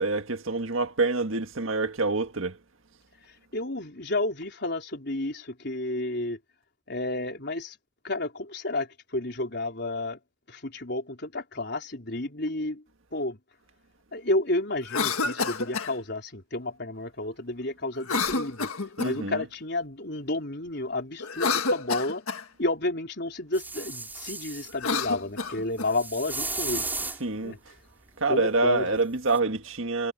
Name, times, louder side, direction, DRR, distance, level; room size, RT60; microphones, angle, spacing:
voice 1, 0.0-2.6 19.0-19.4 27.2-27.6 28.2-30.1, right 3 dB, 70° right, 1.7 m, -26 dB
voice 2, 3.5-6.4 6.9-7.8 8.0-10.2 10.5-12.8 13.1-13.4 14.1-18.7 19.0-22.2 22.6-27.1 27.4-27.6 28.3-28.9, left 2 dB, 50° left, 4.2 m, -31 dB
Cough, 14.8-15.9 18.0-19.3 21.2-22.4 24.7-25.9, left 4 dB, 90° left, 1.7 m, -29 dB
sound 1, 23.5-24.7 25.9-27.2 29.3-29.4, right 3 dB, 10° right, 6.8 m, -34 dB
head